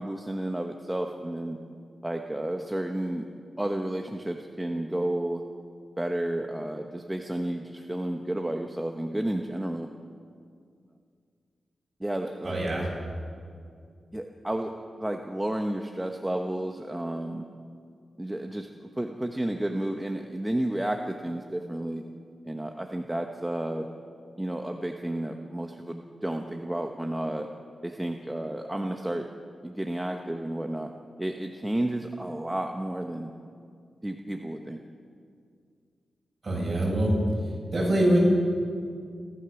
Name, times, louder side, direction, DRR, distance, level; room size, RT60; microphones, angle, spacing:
voice 1, 0.0-1.6 2.0-3.2 3.6-5.4 6.0-9.9 12.0-12.9 14.1-17.4 18.2-22.0 22.5-23.9 24.4-27.5 27.8-29.3 29.6-30.9 31.2-33.3 34.0-34.8, right 1 dB, 10° right, 4 dB, 1.0 m, -31 dB
voice 2, 12.4-12.9 36.4-37.1 37.4-38.2, right 1 dB, 35° right, -3 dB, 7.8 m, -25 dB
29.5 x 13.0 x 7.0 m, 2.2 s
wide cardioid pair, 135°, 0 cm